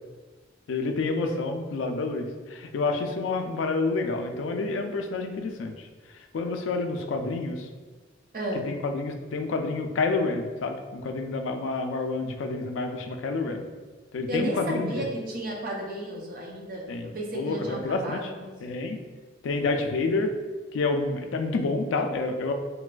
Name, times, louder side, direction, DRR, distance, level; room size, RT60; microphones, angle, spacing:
voice 1, 0.7-5.9 6.1-7.7 8.7-13.6 14.1-15.1 16.9-18.3 18.6-19.0 19.4-20.3 20.7-22.5, left 3 dB, 90° left, 5 dB, 0.4 m, -29 dB
voice 2, 8.3-8.7 14.3-18.5, right 1 dB, 50° right, -1 dB, 0.5 m, -33 dB
3.8 x 2.4 x 2.2 m, 1.4 s
head